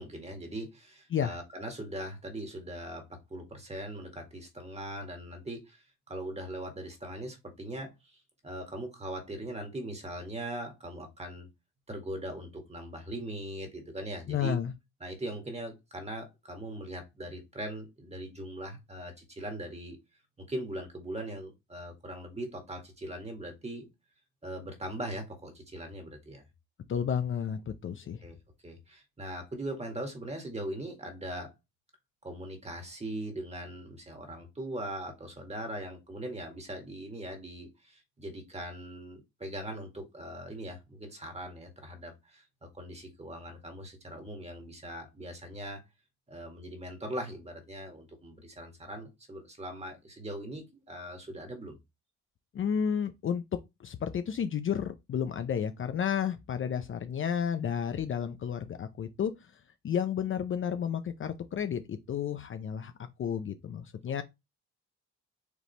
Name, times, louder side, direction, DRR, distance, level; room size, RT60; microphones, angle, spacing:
voice 1, 0.0-7.9 8.4-11.5 11.9-14.6 15.0-20.0 20.4-23.9 24.4-26.4 28.2-28.3 28.6-31.5 32.2-45.8 46.3-51.8, right 1 dB, 20° right, 1.9 m, -40 dB
voice 2, 14.3-14.7 26.9-28.2 52.5-53.4 53.8-59.5 59.8-62.9 63.2-64.2, left 8 dB, 45° left, 0.5 m, -32 dB
5.0 x 3.2 x 3.2 m
cardioid pair, 90°, 30 cm